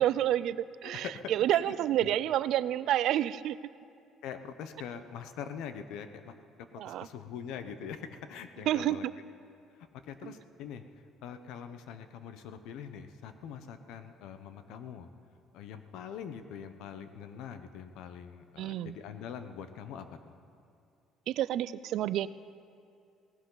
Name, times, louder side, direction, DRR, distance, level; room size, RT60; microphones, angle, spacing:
voice 1, 0.0-3.6 6.8-7.1 8.7-9.0 10.2-10.3 18.6-19.0 21.3-22.3, right 12 dB, 60° right, 17 dB, 0.3 m, -29 dB
voice 2, 0.8-2.1 4.2-6.3 6.8-9.1 10.0-10.8 11.2-15.1 15.5-20.4, left 7 dB, 75° left, 9 dB, 0.9 m, -43 dB
18.0 x 17.5 x 4.0 m, 2.4 s
cardioid pair, 150°, 0 cm